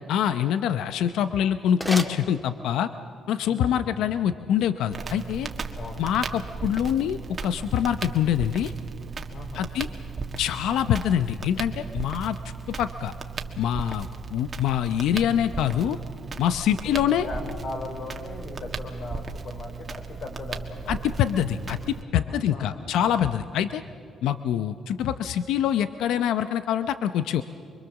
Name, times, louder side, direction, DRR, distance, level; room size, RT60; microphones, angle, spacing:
voice 1, 0.1-2.9 3.3-5.5 6.0-8.7 9.5-9.9 10.4-12.4 12.8-13.1 13.6-16.0 16.4-17.2 20.9-21.8 22.1-23.8 24.2-27.4, left 9 dB, 85° left, 11 dB, 0.7 m, -25 dB
sound 1, 1.6-3.0, equal, ahead, 2.1 m, -36 dB
voice 2, 3.5-3.9 5.7-6.0 9.3-9.7 16.7-21.0 22.2-22.8, left 3 dB, 60° left, 3 dB, 4.2 m, -38 dB
Crackle, 4.9-22.0, right 4 dB, 40° right, 1.8 m, -36 dB
26.0 x 23.0 x 7.2 m, 2.6 s
cardioid pair, 90°, 0 cm